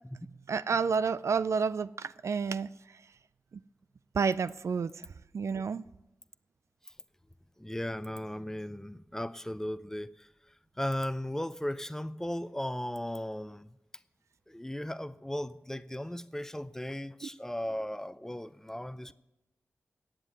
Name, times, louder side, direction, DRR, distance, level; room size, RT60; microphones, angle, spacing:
voice 1, 0.5-2.7 4.1-4.9 5.3-5.8, right 5 dB, 65° right, 16 dB, 0.3 m, -29 dB
voice 2, 7.6-13.8 14.5-19.1, left 1 dB, 10° left, 14 dB, 0.5 m, -37 dB
9.8 x 7.4 x 8.9 m, 0.92 s
cardioid pair, 50°, 5 cm